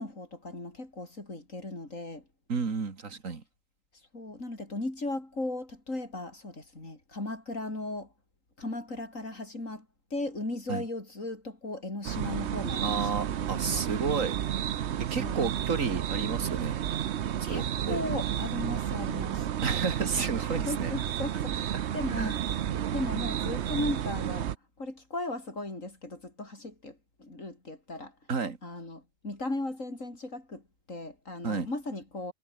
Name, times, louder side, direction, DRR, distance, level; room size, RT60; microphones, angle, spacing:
voice 1, 0.0-2.2 4.1-8.1 8.6-9.9 10.1-13.2 13.7-13.9 15.2-15.4 17.4-19.5 20.4-22.3 22.6-24.5 24.8-28.1 28.6-30.6 30.9-32.3, left 2 dB, 85° left, 6.2 m, -37 dB
voice 2, 2.5-3.4 10.7-10.8 12.8-14.3 15.1-16.8 17.4-18.0 19.6-20.9 22.1-22.3 28.3-28.6 31.4-31.7, right 5 dB, 85° right, 2.6 m, -31 dB
sound 1, 12.0-24.6, right 10 dB, 60° right, 1.0 m, -31 dB
omnidirectional pair, 1.3 m